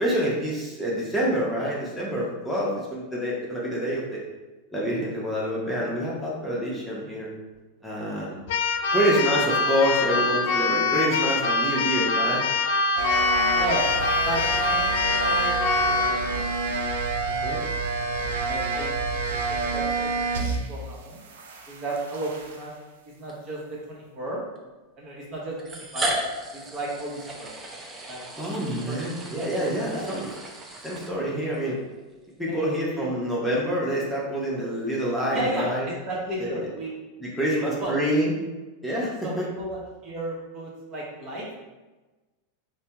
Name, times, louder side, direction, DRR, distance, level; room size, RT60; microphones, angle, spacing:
voice 1, 0.0-4.2 4.7-7.3 7.8-8.4 8.9-12.4 17.4-17.7 28.4-30.3 30.8-31.8 32.4-35.9 36.4-36.6 37.2-38.3 38.8-39.5, equal, ahead, -6 dB, 0.8 m, -27 dB
Keyboard (musical), 8.5-16.2, left 3 dB, 65° left, 0.3 m, -24 dB
sound 1, 13.0-20.8 21.1-22.6, right 3 dB, 75° right, 0.4 m, -28 dB
voice 2, 13.5-13.9 14.2-16.4 17.3-19.0 19.3-21.2 21.7-22.7 23.1-24.4 25.0-26.1 26.5-27.5 28.1-29.0 29.9-30.2 32.5-32.7 32.9-33.1 35.3-36.9 37.5-38.0 39.2-41.5, right 1 dB, 40° right, -4 dB, 1.1 m, -34 dB
sound 2, 23.3-23.4 24.6-24.7 25.6-31.6, right 1 dB, 25° right, 0.6 m, -35 dB
3.3 x 2.2 x 2.8 m, 1.2 s
hypercardioid pair, 95°, 0 cm